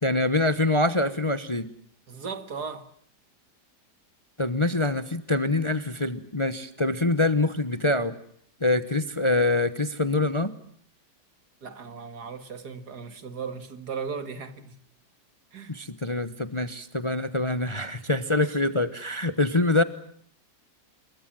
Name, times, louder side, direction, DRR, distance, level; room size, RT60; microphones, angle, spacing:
voice 1, 0.0-1.7 4.4-8.1 8.6-10.5 15.7-19.8, left 2 dB, 20° left, 1.0 m, -25 dB
voice 2, 2.1-2.9 11.6-14.7 15.5-15.8 18.5-18.6, right 5 dB, 70° right, 2.5 m, -37 dB
28.5 x 23.0 x 7.7 m
omnidirectional pair, 1.8 m